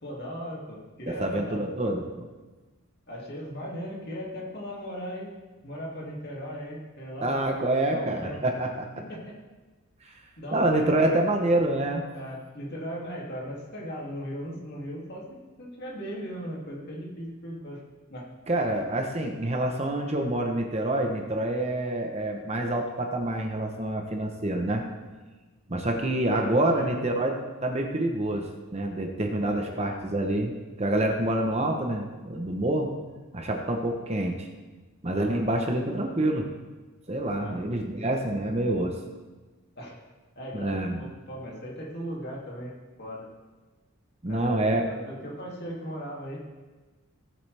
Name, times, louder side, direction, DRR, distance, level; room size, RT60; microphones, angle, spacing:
voice 1, 0.0-1.6 3.1-5.3 5.6-7.3 7.9-8.4 9.0-9.4 10.1-11.2 12.1-17.8 18.1-18.2 26.4-27.0 29.4-29.8 35.1-35.4 37.4-37.6 39.8-40.0 40.4-43.3 44.3-46.4, equal, 45° left, -3 dB, 2.5 m, -38 dB
voice 2, 1.1-2.3 7.2-8.9 10.5-12.0 18.5-24.8 25.7-30.5 30.8-32.9 33.3-34.5 35.0-36.5 37.1-39.0 40.5-41.1 44.2-44.9, right 1 dB, 30° right, 3 dB, 0.9 m, -27 dB
18.0 x 7.8 x 3.4 m, 1.3 s
head